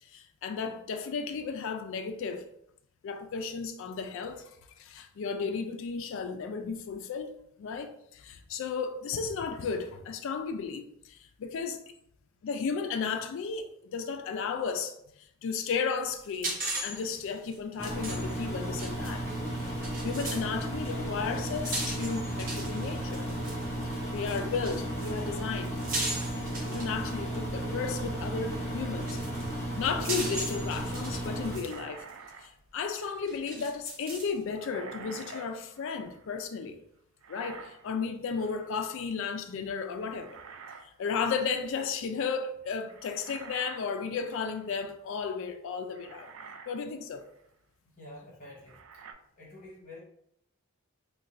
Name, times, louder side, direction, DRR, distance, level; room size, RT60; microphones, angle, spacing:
voice 1, 0.0-2.5 3.0-4.4 4.8-7.3 7.6-11.8 12.4-19.3 20.0-23.3 23.8-25.8 26.6-29.2 29.8-32.0 32.4-36.8 37.3-40.4 40.8-46.3 46.7-47.3, left 5 dB, 60° left, 0.3 m, -34 dB
sound 1, 16.2-20.5 20.8-27.3 28.5-28.6 29.0-31.8 32.1-32.2 33.0-34.4, right 2 dB, 40° right, 0.8 m, -38 dB
Engine, 17.8-31.6, right 1 dB, 10° left, 0.7 m, -34 dB
sound 2, 31.4-33.4 34.5-36.3 37.2-38.0 38.3-38.8 40.0-40.9 41.2-41.4 42.9-44.7 45.4-45.5 45.9-46.8 47.2-47.4 48.7-49.1, right 5 dB, 65° right, 0.3 m, -48 dB
voice 2, 48.0-48.8 49.4-50.0, left 1 dB, 35° left, 0.9 m, -48 dB
2.4 x 2.2 x 4.0 m
head